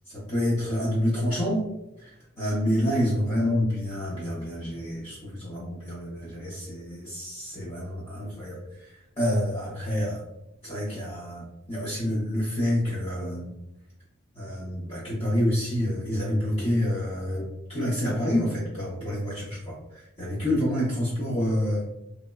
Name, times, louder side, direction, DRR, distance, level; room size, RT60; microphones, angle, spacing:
voice 1, 0.1-1.7 2.0-10.2 10.6-13.5 14.3-21.9, equal, 25° left, -9 dB, 0.6 m, -28 dB
2.9 x 2.1 x 2.2 m, 0.89 s
head